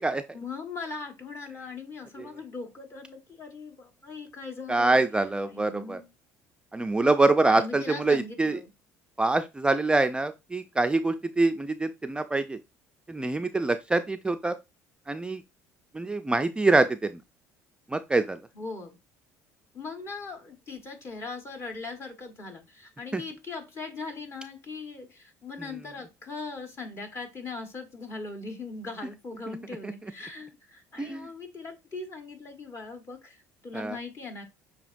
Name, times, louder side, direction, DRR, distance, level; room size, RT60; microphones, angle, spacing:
voice 1, 0.3-5.0 5.5-6.1 7.5-8.7 18.5-19.0 19.7-34.4, left 3 dB, 40° left, 1.3 m, -40 dB
voice 2, 4.7-6.0 6.7-8.6 9.2-12.6 13.1-14.6 15.1-15.4 15.9-17.2 17.9-18.4 23.1-23.2 29.8-29.9 31.0-31.3 33.7-34.0, right 2 dB, 15° right, 0.3 m, -25 dB
6.7 x 2.8 x 2.6 m
supercardioid pair, 80°, 7 cm